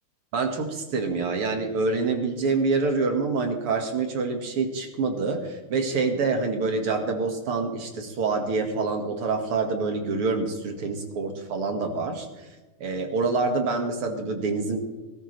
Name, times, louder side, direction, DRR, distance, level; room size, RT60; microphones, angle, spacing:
voice 1, 0.3-12.3 12.8-14.8, right 4 dB, 80° right, 4 dB, 2.9 m, -26 dB
18.5 x 17.0 x 3.4 m, 1.2 s
omnidirectional pair, 2.4 m